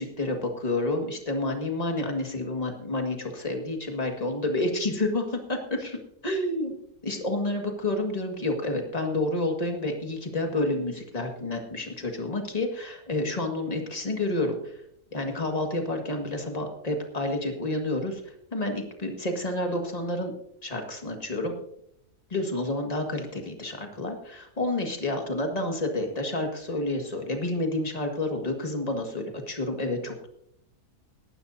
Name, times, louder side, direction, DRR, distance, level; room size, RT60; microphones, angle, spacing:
voice 1, 0.0-6.0 6.2-6.7 7.0-14.8 15.1-18.2 18.5-20.3 20.6-21.5 22.3-30.3, left 2 dB, 25° left, 3 dB, 1.8 m, -29 dB
18.5 x 12.0 x 2.7 m, 0.74 s
omnidirectional pair, 1.7 m